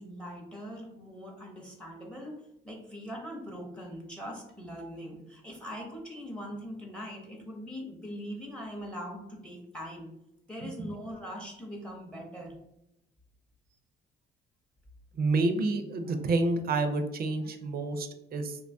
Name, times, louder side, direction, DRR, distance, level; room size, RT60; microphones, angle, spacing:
voice 1, 0.0-10.1 10.5-12.6, equal, 5° left, 1 dB, 0.6 m, -41 dB
voice 2, 15.1-18.6, right 3 dB, 50° right, 7 dB, 0.4 m, -29 dB
2.8 x 2.2 x 2.5 m, 0.82 s
cardioid pair, 90°, 20 cm